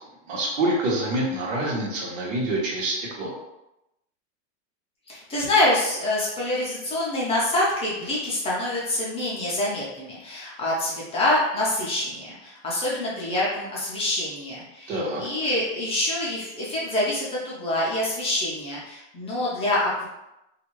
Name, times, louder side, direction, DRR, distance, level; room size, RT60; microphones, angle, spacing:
voice 1, 0.3-3.3 14.9-15.2, right 1 dB, 80° right, -3 dB, 1.2 m, -26 dB
voice 2, 5.1-20.1, left 1 dB, 15° left, -6 dB, 0.5 m, -26 dB
2.5 x 2.4 x 3.1 m, 0.90 s
supercardioid pair, 150°, 38 cm